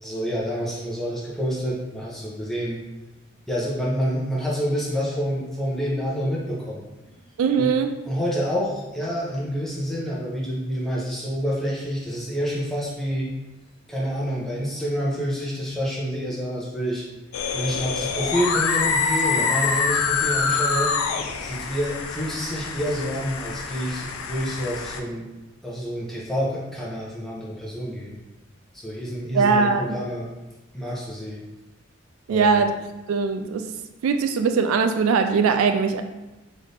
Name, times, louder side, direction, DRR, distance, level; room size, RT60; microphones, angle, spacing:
voice 1, 0.0-2.8 3.5-7.1 7.6-7.7 8.1-13.3 13.9-17.0 17.5-20.9 21.4-25.2 25.6-28.2 28.7-30.3 30.7-31.4 32.3-32.6, equal, ahead, -6 dB, 0.8 m, -28 dB
voice 2, 7.4-7.9 29.3-30.0 32.3-32.7 33.1-33.7 34.0-36.0, right 5 dB, 80° right, 9 dB, 0.3 m, -20 dB
sound 1, 17.3-25.0, left 5 dB, 85° left, 0.4 m, -26 dB
4.0 x 2.6 x 3.3 m, 1.1 s
head